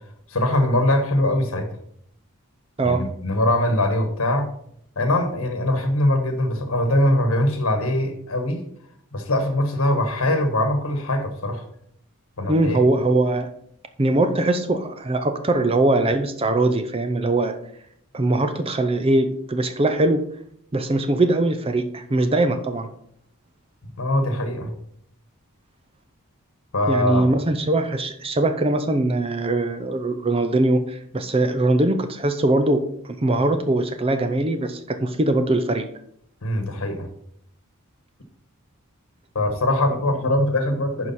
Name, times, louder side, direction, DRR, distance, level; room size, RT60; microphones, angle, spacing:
voice 1, 0.3-1.7 2.8-4.5 5.0-8.6 9.1-11.6 12.4-12.8 24.0-24.7 26.7-27.3 36.4-37.1 39.3-41.1, left 1 dB, 70° left, 6 dB, 1.2 m, -22 dB
voice 2, 12.5-13.5 14.0-17.5 18.1-20.2 20.7-22.9 26.9-35.8, right 2 dB, 25° right, 8 dB, 0.5 m, -21 dB
11.0 x 4.7 x 4.2 m, 0.68 s
head